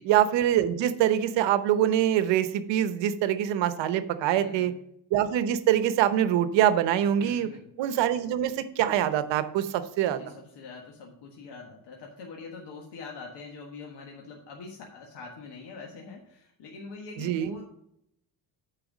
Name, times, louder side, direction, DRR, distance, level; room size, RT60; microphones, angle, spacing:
voice 1, 0.0-4.7 5.1-7.5 7.8-10.2 17.2-17.6, right 11 dB, 85° right, 11 dB, 0.9 m, -24 dB
voice 2, 4.2-4.8 7.2-7.7 10.0-17.6, left 4 dB, 70° left, 0 dB, 1.6 m, -44 dB
9.1 x 4.7 x 6.0 m, 0.75 s
cardioid pair, 145°, 43 cm